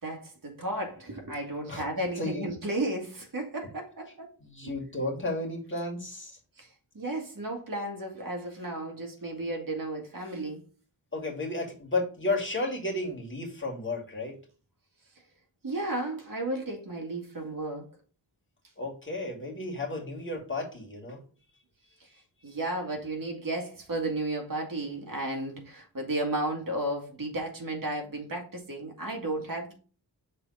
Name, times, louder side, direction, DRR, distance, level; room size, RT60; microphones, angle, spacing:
voice 1, 0.0-4.3 4.6-4.7 6.6-6.7 6.9-10.6 15.6-17.9 22.4-29.7, right 1 dB, 50° right, 2.0 m, -33 dB
voice 2, 2.2-2.5 4.4-6.4 11.1-14.4 18.8-21.2, left 2 dB, 30° left, 2.3 m, -33 dB
6.5 x 3.7 x 4.1 m
wide cardioid pair, 110°, 42 cm